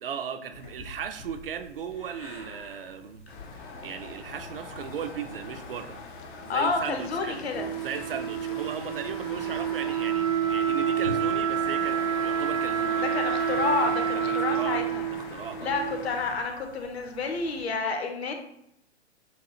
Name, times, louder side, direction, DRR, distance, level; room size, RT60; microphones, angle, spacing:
voice 1, 0.0-3.2 3.6-6.0 6.4-7.4 7.8-13.2 14.1-15.8, right 8 dB, 50° right, 0.5 m, -37 dB
sound 1, 0.5-17.6, left 2 dB, 10° left, 0.3 m, -47 dB
sound 2, 3.3-16.4, left 5 dB, 45° left, 0.7 m, -42 dB
voice 2, 6.5-7.7 13.1-14.8 15.6-18.3, left 4 dB, 60° left, 1.0 m, -29 dB
Wind instrument woodwind instrument, 7.5-16.3, right 8 dB, 85° right, 1.2 m, -28 dB
7.0 x 2.4 x 2.8 m
figure-of-eight pair, 120°, 36 cm